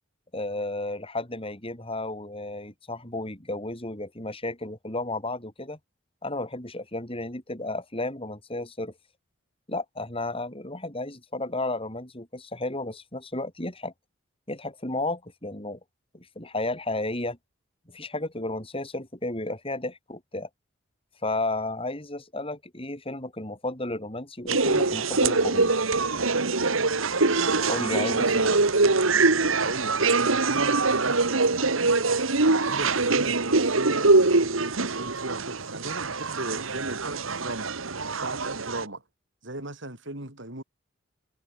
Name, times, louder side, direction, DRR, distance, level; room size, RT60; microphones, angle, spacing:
voice 1, 0.3-5.8 6.2-8.9 9.7-13.9 14.5-15.8 16.1-17.4 17.9-20.5 21.2-25.7 27.7-28.3, left 2 dB, 25° left, 5.8 m, -33 dB
sound 1, 24.5-38.8, right 3 dB, 80° right, 2.0 m, -23 dB
voice 2, 28.2-28.6 29.6-32.0 32.5-37.7 38.2-39.0 39.4-40.6, right 2 dB, 60° right, 6.0 m, -36 dB
head